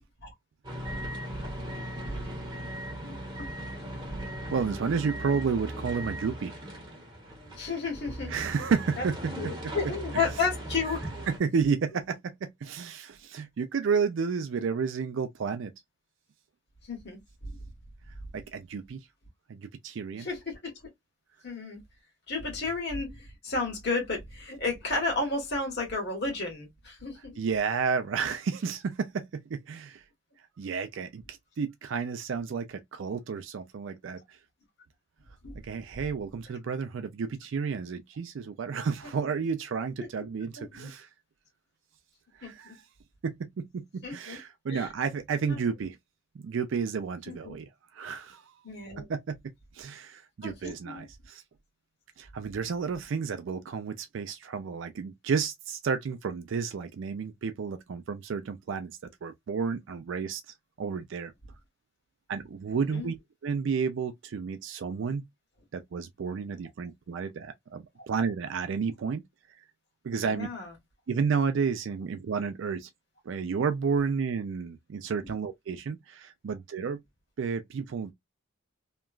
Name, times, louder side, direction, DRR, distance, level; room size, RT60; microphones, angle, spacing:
sound 1, 0.6-11.4, right 1 dB, 20° right, 1.0 m, -38 dB
voice 1, 3.0-3.5 3.8-4.0 7.6-8.6 9.0-9.1 9.3-11.1 16.9-17.5 20.2-20.7 21.4-21.8 22.3-27.4 35.4-35.6 40.0-40.1 40.6-40.9 42.4-42.7 44.0-44.4 44.7-44.9 45.5-45.6 47.3-47.5 48.6-49.1 50.4-51.0 62.9-63.1 70.2-70.7, left 3 dB, 55° left, 1.4 m, -33 dB
voice 2, 4.5-6.5 8.3-9.3 9.6-9.7 10.1-10.2 11.3-15.7 18.3-19.0 19.5-20.3 27.4-30.0 30.6-34.2 35.6-41.1 42.4-42.8 43.2-46.0 46.4-48.5 49.0-49.4 49.7-51.4 52.2-58.9 59.2-60.4 60.8-61.3 62.3-63.2 63.4-65.3 65.7-69.2 70.0-70.5 71.1-72.9 73.3-77.0 77.4-78.1, right 5 dB, 60° right, 0.4 m, -31 dB
2.9 x 2.3 x 2.3 m
head